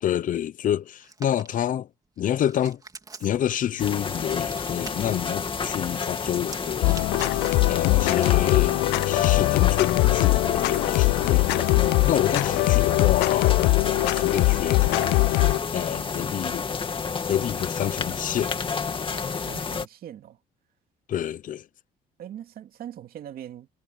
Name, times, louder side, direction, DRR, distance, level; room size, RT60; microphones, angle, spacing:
voice 1, 0.0-1.9 2.2-2.8 3.2-7.0 7.7-11.7 12.1-16.7 17.3-18.5 21.1-21.7, left 10 dB, 50° left, 0.8 m, -28 dB
Hands, 1.0-1.5 2.2-3.5 4.4-5.2 6.4-8.4, right 3 dB, 20° right, 3.3 m, -44 dB
sound 1, 3.8-19.9, left 5 dB, 30° left, 2.4 m, -30 dB
sound 2, 6.8-15.6, left 23 dB, 85° left, 0.4 m, -21 dB
voice 2, 19.1-20.4 22.2-23.7, right 10 dB, 60° right, 2.7 m, -41 dB
cardioid pair, 110°, 17 cm